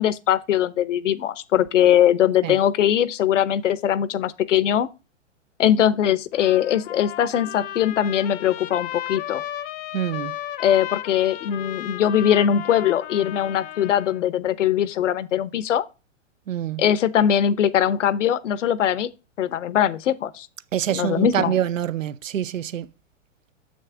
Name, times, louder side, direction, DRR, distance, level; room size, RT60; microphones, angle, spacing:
voice 1, 0.0-4.9 5.6-9.4 10.6-15.8 16.8-19.1 19.4-20.5 20.9-21.5, left 10 dB, 75° left, 0.9 m, -21 dB
Trumpet, 6.3-14.2, left 13 dB, 25° left, 0.7 m, -35 dB
voice 2, 9.9-10.4 16.5-16.8 20.7-22.9, right 10 dB, 90° right, 0.7 m, -25 dB
7.6 x 6.5 x 3.5 m
hypercardioid pair, 130°, 37 cm